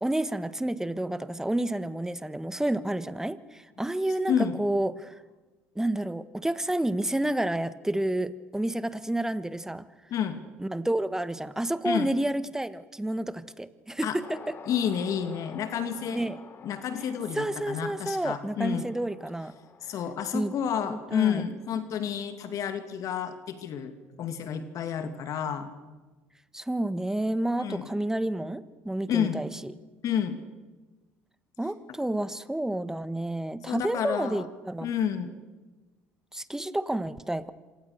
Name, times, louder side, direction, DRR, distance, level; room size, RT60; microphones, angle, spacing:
voice 1, 0.0-5.1 5.7-9.8 10.6-14.6 16.1-16.4 17.3-19.5 20.3-20.5 20.9-21.4 26.5-29.7 31.6-34.9 36.3-37.5, right 1 dB, 5° right, 14 dB, 1.5 m, -30 dB
sound 1, 14.2-22.7, left 5 dB, 40° left, 3.2 m, -50 dB
voice 2, 14.7-16.4 16.6-18.9 19.9-25.7 27.6-27.9 29.1-29.4 30.0-30.4 33.7-34.5 34.8-35.3, left 8 dB, 55° left, 8 dB, 2.4 m, -30 dB
27.0 x 26.0 x 6.7 m, 1.2 s
hypercardioid pair, 60°, 7 cm